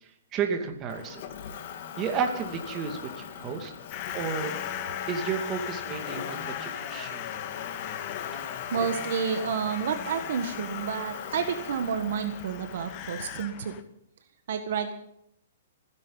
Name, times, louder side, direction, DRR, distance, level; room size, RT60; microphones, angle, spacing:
voice 1, 0.3-1.2 2.0-3.7 4.1-4.5 5.1-7.2, right 6 dB, 25° right, 4 dB, 2.3 m, -32 dB
Motor vehicle (road), 0.9-13.4, left 8 dB, 50° left, 1.9 m, -38 dB
sound 1, 3.9-13.8, left 12 dB, 35° left, 1.0 m, -41 dB
voice 2, 8.7-13.8 14.5-14.9, right 7 dB, 65° right, 7 dB, 1.5 m, -30 dB
26.5 x 11.0 x 4.0 m, 0.75 s
hypercardioid pair, 150°, 0 cm